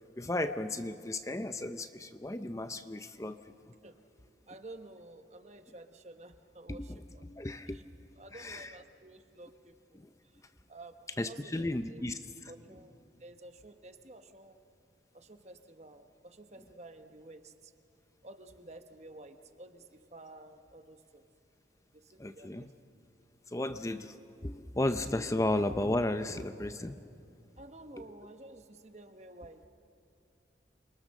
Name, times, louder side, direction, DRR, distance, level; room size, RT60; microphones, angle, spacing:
voice 1, 0.2-3.4 6.7-7.8 8.3-8.7 9.9-10.1 11.2-12.5 22.2-22.7 23.5-24.2 24.4-27.0, left 1 dB, 15° left, 9 dB, 0.6 m, -34 dB
voice 2, 4.5-7.2 7.7-7.8 8.2-10.4 10.7-11.6 11.9-12.0 12.5-14.6 15.1-17.7 18.2-21.2 21.9-22.7 27.6-29.7, right 2 dB, 40° right, 7 dB, 1.2 m, -52 dB
28.5 x 23.5 x 6.5 m, 2.5 s
head